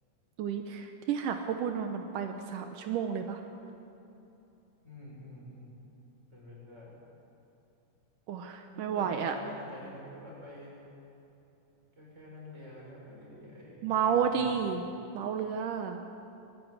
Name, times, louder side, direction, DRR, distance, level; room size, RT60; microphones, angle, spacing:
voice 1, 0.4-3.4 8.3-9.4 13.8-14.8 15.1-16.0, right 7 dB, 80° right, 5 dB, 2.5 m, -31 dB
voice 2, 4.8-5.7 6.3-6.9 8.7-10.8 11.9-14.8, left 1 dB, 20° right, -4 dB, 6.7 m, -47 dB
20.0 x 15.5 x 9.7 m, 2.9 s
omnidirectional pair, 3.8 m